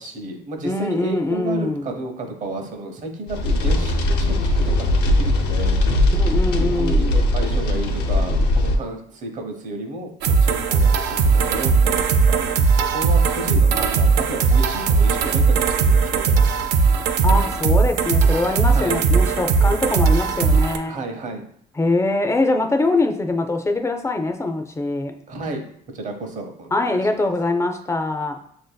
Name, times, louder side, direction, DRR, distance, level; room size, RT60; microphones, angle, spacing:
voice 1, 0.0-3.9 4.2-5.8 6.7-12.4 12.7-16.7 16.9-17.1 18.7-19.0 20.9-21.4 25.3-25.6 25.9-27.3, right 2 dB, 50° right, 4 dB, 0.8 m, -32 dB
voice 2, 0.6-1.9 6.2-7.2 17.2-21.0 21.8-25.1 26.7-28.4, left 2 dB, 15° left, 5 dB, 0.4 m, -23 dB
sound 1, 3.3-8.8, left 1 dB, 80° left, 0.6 m, -19 dB
sound 2, 10.2-20.8, right 5 dB, 85° right, 0.5 m, -18 dB
6.2 x 2.6 x 2.2 m, 0.66 s
cardioid pair, 110°, 17 cm